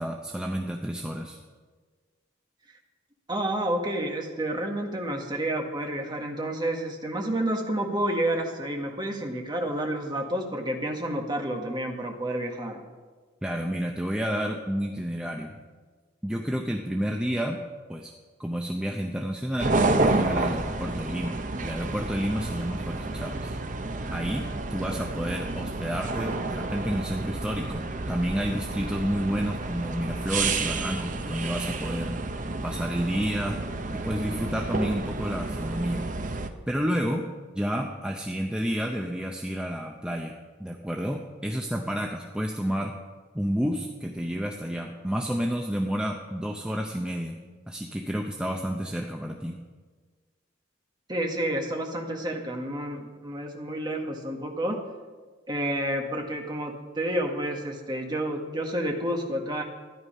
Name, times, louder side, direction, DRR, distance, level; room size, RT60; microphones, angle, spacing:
voice 1, 0.0-1.4 13.4-15.6 16.2-17.6 17.9-18.1 18.4-23.6 24.1-32.1 32.6-33.6 33.9-36.1 36.7-37.3 37.5-40.3 40.6-42.9 43.3-47.4 47.7-49.6, equal, 5° right, 1 dB, 0.6 m, -30 dB
voice 2, 3.3-12.8 51.1-54.8 55.5-59.6, right 1 dB, 20° right, 2 dB, 1.4 m, -30 dB
sound 1, 19.6-36.5, right 2 dB, 40° right, 0.8 m, -30 dB
13.0 x 11.0 x 5.5 m, 1.4 s
head